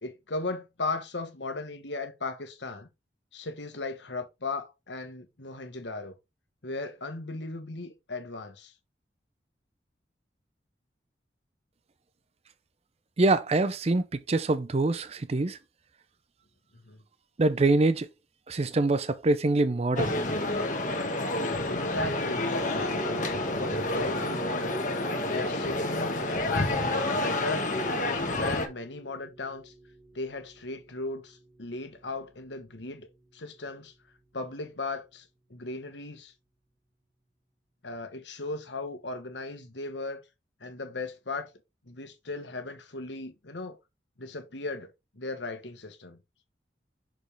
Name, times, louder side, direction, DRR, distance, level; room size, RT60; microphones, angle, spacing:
voice 1, 0.0-2.9 3.3-6.1 6.6-8.7 16.7-17.0 21.7-26.2 26.4-27.6 28.3-29.7 30.1-33.1 33.3-33.9 34.3-36.3 37.8-40.2 40.6-41.5 41.9-43.8 44.2-46.2, left 3 dB, 80° left, 1.3 m, -37 dB
voice 2, 13.2-15.6 17.4-18.1 18.5-20.1, right 2 dB, 35° right, 0.5 m, -25 dB
sound 1, 20.0-28.7, left 2 dB, 45° left, 1.3 m, -29 dB
sound 2, 22.5-34.0, right 2 dB, 20° right, 1.6 m, -44 dB
6.4 x 5.2 x 3.3 m
head